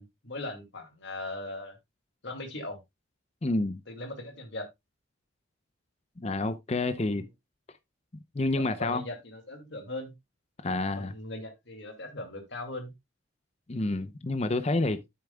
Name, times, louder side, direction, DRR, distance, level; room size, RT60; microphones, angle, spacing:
voice 1, 0.0-1.8 2.2-2.8 3.9-4.7 6.9-7.3 8.6-10.1 11.0-12.9, left 2 dB, 55° left, 2.3 m, -39 dB
voice 2, 3.4-3.8 6.2-7.2 8.3-9.0 10.6-11.1 13.7-15.1, left 2 dB, 30° left, 0.6 m, -29 dB
9.5 x 8.6 x 2.2 m
head